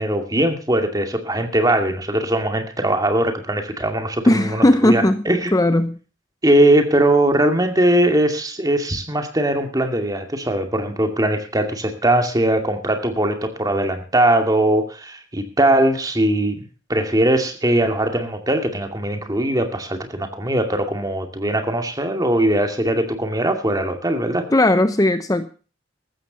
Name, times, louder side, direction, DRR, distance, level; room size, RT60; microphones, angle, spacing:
voice 1, 0.0-5.6 6.4-16.6 16.9-24.4, right 1 dB, 20° right, 5 dB, 2.4 m, -20 dB
voice 2, 4.3-5.2 5.5-6.0 24.5-25.5, left 1 dB, 20° left, 10 dB, 0.7 m, -17 dB
15.0 x 13.0 x 4.1 m, 0.37 s
head